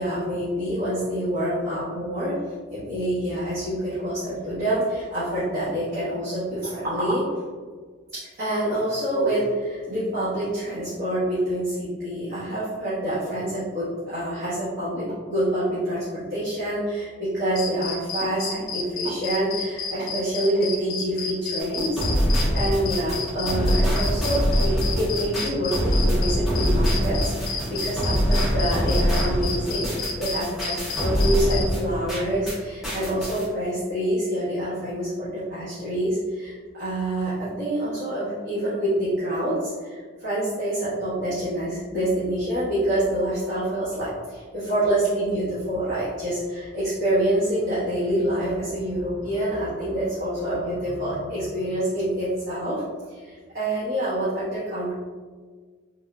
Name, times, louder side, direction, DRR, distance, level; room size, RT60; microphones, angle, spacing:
voice 1, 0.0-2.4 2.7-7.2 8.1-22.0 22.3-29.9 30.2-52.8 53.1-54.9, right 1 dB, 50° right, -13 dB, 1.1 m, -26 dB
sound 1, 17.6-31.7, left 5 dB, 75° left, 0.4 m, -31 dB
sound 2, 21.6-32.6 32.8-33.4, equal, ahead, 0.6 m, -24 dB
3.5 x 2.6 x 2.2 m, 1.5 s
head